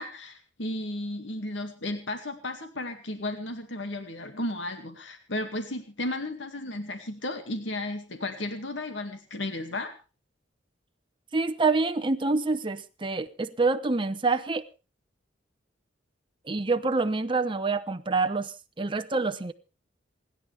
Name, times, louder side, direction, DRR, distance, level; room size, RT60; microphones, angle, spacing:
voice 1, 0.0-9.9, left 1 dB, 85° left, 2.1 m, -34 dB
voice 2, 11.3-14.6 16.4-19.5, right 3 dB, 25° right, 0.9 m, -27 dB
27.5 x 10.5 x 3.4 m
head